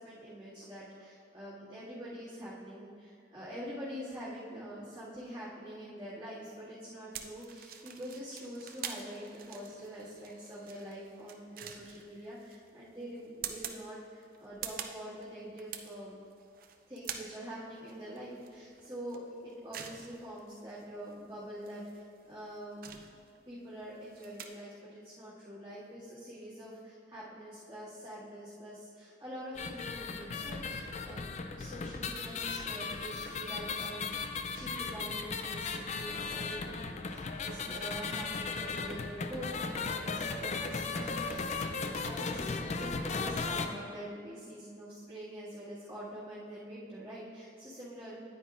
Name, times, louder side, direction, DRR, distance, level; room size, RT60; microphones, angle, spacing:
voice 1, 0.0-16.2 16.9-22.8 23.5-48.2, equal, 15° right, -15 dB, 2.0 m, -45 dB
sound 1, 7.1-24.5, right 8 dB, 55° right, 0.5 m, -47 dB
sound 2, 29.5-43.7, left 4 dB, 40° left, 0.4 m, -36 dB
9.5 x 9.5 x 2.5 m, 2.2 s
head